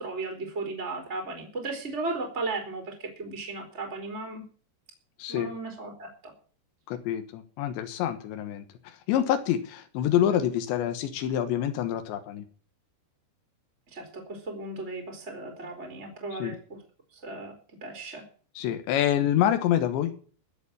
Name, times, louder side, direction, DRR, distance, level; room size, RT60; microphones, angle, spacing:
voice 1, 0.0-4.4 5.3-6.3 13.9-16.8 17.1-17.5 17.8-18.2, right 3 dB, 15° right, 2 dB, 3.3 m, -35 dB
voice 2, 5.2-5.5 6.9-8.6 9.1-12.4 16.4-16.6 18.6-20.1, left 10 dB, 90° left, 8 dB, 3.6 m, -26 dB
15.5 x 7.2 x 8.6 m, 0.42 s
omnidirectional pair, 5.0 m